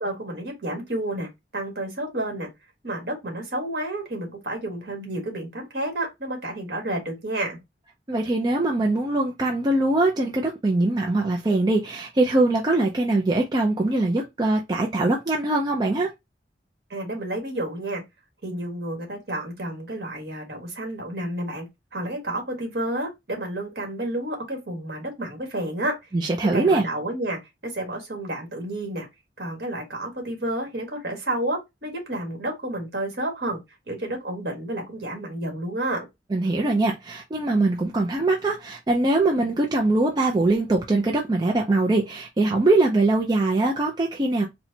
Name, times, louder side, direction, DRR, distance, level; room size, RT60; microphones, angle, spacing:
voice 1, 0.0-2.5 2.8-7.6 16.9-18.0 18.4-21.7 21.9-26.0 26.5-29.1 29.4-33.6 33.9-36.1, right 1 dB, 60° right, 1.5 m, -30 dB
voice 2, 8.1-16.1 26.1-26.8 36.3-44.4, right 2 dB, 25° right, 0.4 m, -22 dB
4.3 x 2.2 x 2.7 m
head